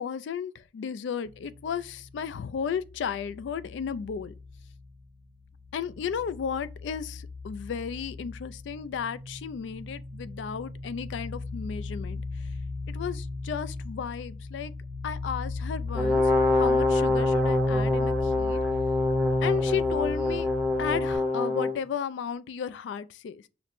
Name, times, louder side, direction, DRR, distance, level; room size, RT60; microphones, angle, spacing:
voice 1, 0.0-4.3 5.7-12.2 12.9-14.7 15.0-18.6 19.4-20.5 20.8-23.4, left 7 dB, 80° left, 0.3 m, -34 dB
sound 1, 1.3-5.1 5.4-21.2, left 2 dB, 45° right, 0.6 m, -35 dB
Brass instrument, 16.0-21.8, left 2 dB, ahead, 0.6 m, -25 dB
5.8 x 2.0 x 2.5 m
head